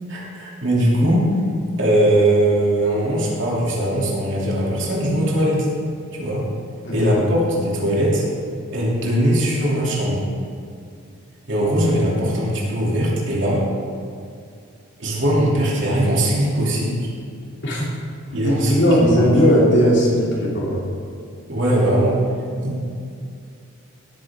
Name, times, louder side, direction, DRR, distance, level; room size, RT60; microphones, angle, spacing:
voice 1, 0.1-1.3 1.8-5.7 6.1-6.4 6.9-8.2 8.7-10.3 11.5-13.6 15.0-17.1 18.3-19.2 21.5-22.2 22.6-22.9, right 1 dB, 55° right, -5 dB, 3.0 m, -20 dB
voice 2, 6.8-7.2 17.6-17.9 18.3-20.8, equal, 55° left, -5 dB, 3.0 m, -17 dB
17.0 x 9.3 x 3.7 m, 2.3 s
head